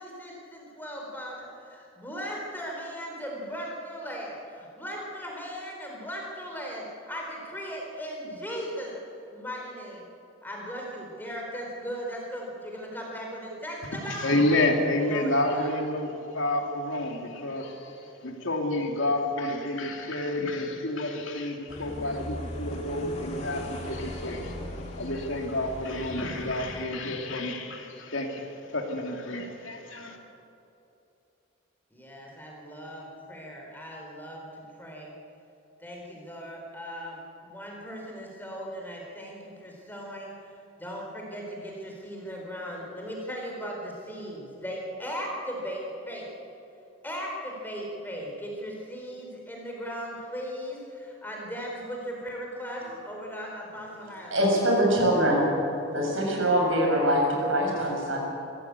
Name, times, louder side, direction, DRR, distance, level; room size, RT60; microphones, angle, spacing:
voice 1, 0.0-8.9 9.3-10.0 10.4-14.3 15.0-15.7 31.9-35.1 35.8-40.4 40.8-46.3 47.0-54.4, equal, 10° left, -1 dB, 4.2 m, -38 dB
voice 2, 14.1-24.6 25.0-30.2, left 1 dB, 70° left, 2 dB, 2.8 m, -29 dB
sound 1, 21.7-26.8, left 1 dB, 30° left, 2.6 m, -38 dB
voice 3, 54.3-55.5 55.9-58.2, equal, 75° right, -1 dB, 7.2 m, -23 dB
24.5 x 16.0 x 8.3 m, 2.9 s
head